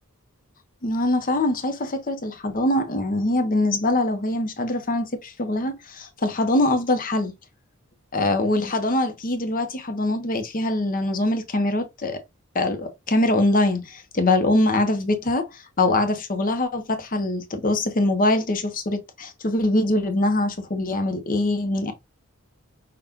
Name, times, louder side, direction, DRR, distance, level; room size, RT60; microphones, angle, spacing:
voice 1, 0.8-7.3 8.1-12.2 12.5-21.9, left 2 dB, 40° left, 0.9 m, -23 dB
5.8 x 2.4 x 3.6 m
head